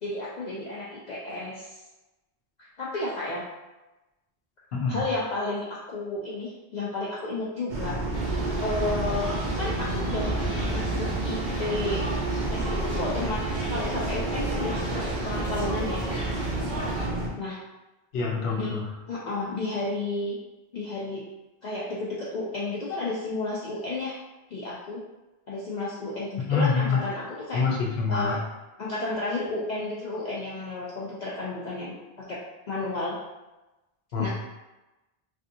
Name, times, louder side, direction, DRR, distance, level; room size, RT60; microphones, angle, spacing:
voice 1, 0.0-1.8 2.6-3.4 4.9-7.9 8.6-10.4 10.7-12.0 12.5-16.0 17.4-17.6 18.6-18.8 19.1-20.4 20.7-21.2 21.6-24.2 24.5-25.0 25.5-27.6 28.1-28.4 28.8-32.0 32.3-32.4 32.7-33.2 34.2-34.3, left 2 dB, 55° left, -7 dB, 0.6 m, -32 dB
sound 1, 7.7-17.3, right 2 dB, 55° right, 0.6 m, -30 dB
sound 2, 8.1-17.1, right 1 dB, 85° right, 1.6 m, -34 dB
voice 2, 18.1-18.9 26.5-27.0 27.5-28.4 34.1-34.3, left 5 dB, 80° left, -1 dB, 0.9 m, -26 dB
3.4 x 2.6 x 2.6 m, 1.0 s
omnidirectional pair, 1.0 m